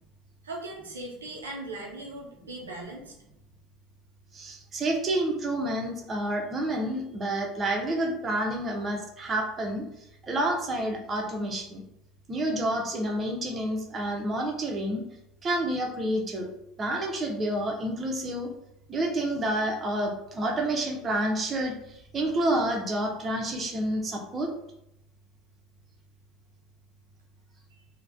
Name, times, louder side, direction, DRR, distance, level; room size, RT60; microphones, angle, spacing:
voice 1, 0.4-3.1, right 2 dB, 90° right, -1 dB, 0.4 m, -39 dB
voice 2, 4.3-9.8 10.2-11.8 12.3-15.0 15.4-16.5 16.8-18.5 18.9-24.5, right 1 dB, 30° right, 1 dB, 0.6 m, -29 dB
3.2 x 2.1 x 2.4 m, 0.82 s
hypercardioid pair, 75°, 0 cm